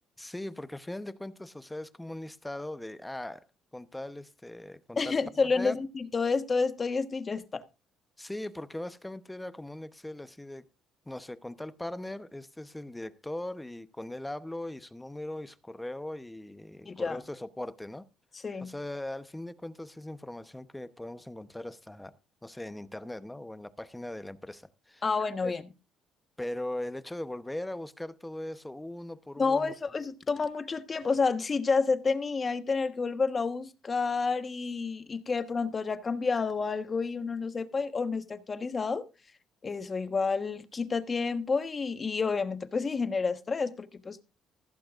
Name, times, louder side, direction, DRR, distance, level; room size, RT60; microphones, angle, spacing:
voice 1, 0.2-3.5 3.7-5.2 5.5-5.7 8.2-10.7 11.1-18.1 18.6-22.2 22.4-25.1 25.4-25.5 26.4-29.7, left 1 dB, 10° left, 0.9 m, -39 dB
voice 2, 5.0-7.6 16.8-17.2 18.4-18.7 25.0-25.6 29.4-39.0 39.6-44.2, left 4 dB, 30° left, 1.2 m, -29 dB
15.5 x 15.0 x 2.5 m
cardioid pair, 105°, 0 cm